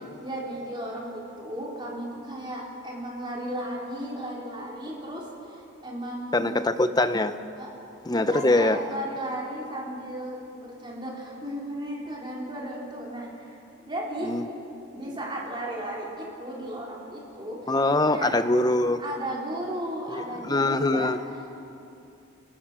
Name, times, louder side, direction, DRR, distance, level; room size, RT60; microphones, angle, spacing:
voice 1, 0.2-6.4 7.6-7.7 8.1-14.3 14.9-17.8 18.0-18.3 19.0-21.1 21.6-21.7, right 1 dB, 20° right, -4 dB, 4.0 m, -35 dB
voice 2, 6.3-7.3 8.1-8.8 14.2-14.4 17.7-19.0 20.1-21.2, left 2 dB, 20° left, 10 dB, 0.7 m, -23 dB
29.5 x 14.5 x 6.3 m, 2.7 s
head